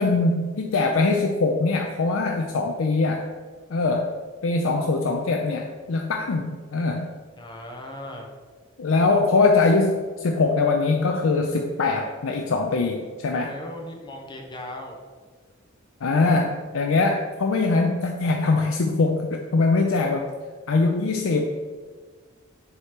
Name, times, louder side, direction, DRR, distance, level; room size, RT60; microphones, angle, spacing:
voice 1, 0.0-3.3 3.7-4.1 4.4-7.1 8.8-13.5 16.0-20.3 20.7-21.4, left 3 dB, 80° left, 2 dB, 0.5 m, -22 dB
voice 2, 7.4-8.3 13.4-15.0, left 1 dB, 20° left, 1 dB, 0.9 m, -38 dB
7.3 x 3.2 x 5.0 m, 1.5 s
head